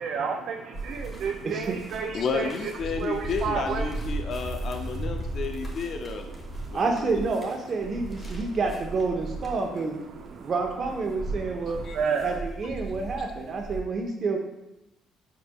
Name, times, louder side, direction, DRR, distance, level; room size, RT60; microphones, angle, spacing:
voice 1, 0.0-2.7 3.0-3.9 6.5-6.8 8.3-8.4 10.2-10.5 11.3-12.3, right 6 dB, 65° right, 3 dB, 0.4 m, -31 dB
sound 1, 0.7-13.8, right 2 dB, 25° left, 1.3 m, -36 dB
voice 2, 1.4-1.8 6.7-10.0 10.4-11.8 12.2-14.4, right 3 dB, 50° right, 3 dB, 0.8 m, -28 dB
voice 3, 2.1-6.4 6.7-7.2 11.8-12.0, left 5 dB, 60° left, 5 dB, 0.4 m, -32 dB
5.0 x 4.5 x 2.3 m, 0.93 s
supercardioid pair, 75°, 0 cm